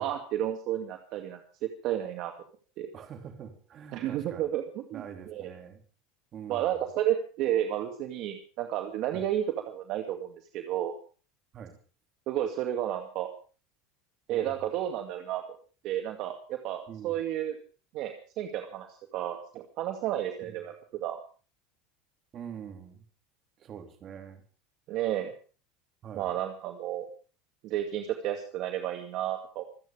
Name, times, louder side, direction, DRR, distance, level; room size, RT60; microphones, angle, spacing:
voice 1, 0.0-2.3 2.8-2.9 3.9-5.5 6.5-10.9 12.3-13.3 14.3-15.4 15.8-17.6 17.9-18.9 19.1-21.2 24.9-25.3 26.1-27.1 27.6-29.6, right 11 dB, 50° right, 4 dB, 2.2 m, -32 dB
voice 2, 2.9-4.5 4.9-5.8 6.3-6.8 9.1-9.2 11.5-11.8 14.3-14.6 16.9-17.2 20.4-20.6 22.3-23.0 23.6-24.4 26.0-26.3, right 8 dB, 35° right, 5 dB, 3.7 m, -44 dB
26.5 x 9.5 x 5.1 m, 0.39 s
supercardioid pair, 145°, 0 cm